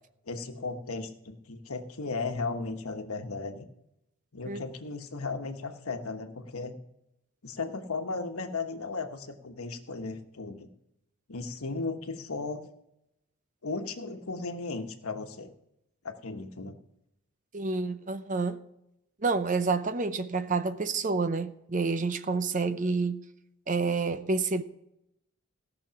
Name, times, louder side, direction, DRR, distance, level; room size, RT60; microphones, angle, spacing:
voice 1, 0.3-3.7 4.3-6.7 7.4-10.7 11.3-12.6 13.6-15.5 16.0-16.8, left 3 dB, 85° left, 1.2 m, -36 dB
voice 2, 17.5-18.6 19.2-23.2 23.7-24.6, right 4 dB, 35° right, 0.6 m, -28 dB
17.0 x 6.2 x 5.8 m
head